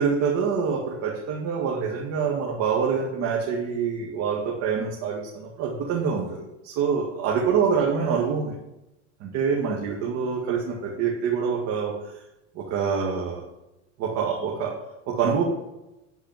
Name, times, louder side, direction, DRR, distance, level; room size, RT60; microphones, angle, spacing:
voice 1, 0.0-8.6 9.2-12.2 12.6-13.4 14.0-14.7 15.1-15.4, right 6 dB, 50° right, -2 dB, 2.0 m, -26 dB
11.0 x 4.8 x 7.4 m, 0.95 s
supercardioid pair, 115°, 36 cm